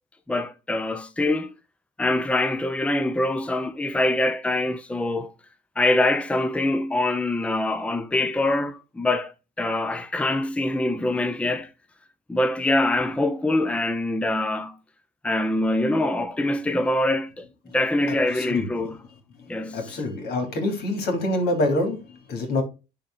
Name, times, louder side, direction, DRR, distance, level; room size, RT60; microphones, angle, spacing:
voice 1, 0.3-1.5 2.0-5.3 5.8-11.7 12.3-14.8 15.2-17.5 17.7-19.0 19.5-19.9, left 1 dB, 5° left, 0.6 m, -24 dB
voice 2, 18.4-18.9 19.4-22.6, left 1 dB, 70° left, 3.3 m, -26 dB
10.5 x 3.9 x 3.9 m
cardioid pair, 110°, 17 cm